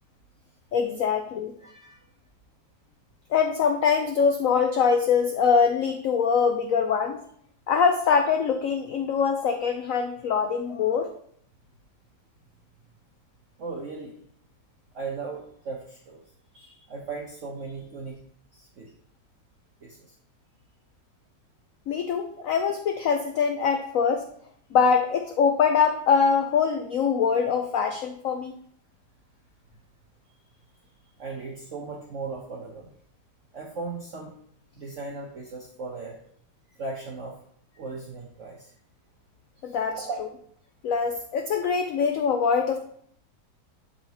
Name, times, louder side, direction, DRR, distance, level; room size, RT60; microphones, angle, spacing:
voice 1, 0.7-1.5 3.3-7.2 7.7-11.1 21.9-24.3 24.7-28.5 39.6-40.1 40.8-42.8, left 6 dB, 70° left, 5 dB, 0.8 m, -23 dB
voice 2, 1.6-2.1 13.6-14.2 14.9-16.2 16.5-18.1 18.5-18.9 19.8-20.1 31.2-32.9 33.5-34.3 34.8-36.2 36.7-37.3 37.7-38.7 39.6-40.2, right 4 dB, 50° right, -1 dB, 1.1 m, -37 dB
11.0 x 4.0 x 2.9 m, 0.64 s
omnidirectional pair, 1.9 m